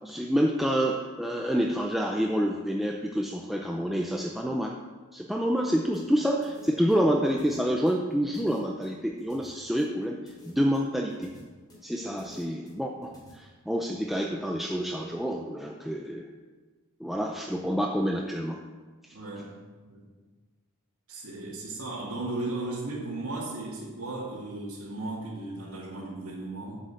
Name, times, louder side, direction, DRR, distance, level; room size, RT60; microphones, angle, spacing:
voice 1, 0.0-4.8 5.1-11.3 11.8-16.3 17.0-18.6 19.0-19.2, equal, ahead, 0 dB, 0.5 m, -28 dB
sound 1, 5.9-13.3, left 1 dB, 20° left, 3.0 m, -53 dB
voice 2, 19.1-19.5 19.8-20.1 21.1-26.8, right 2 dB, 70° right, -7 dB, 2.3 m, -36 dB
7.8 x 6.6 x 7.7 m, 1.4 s
head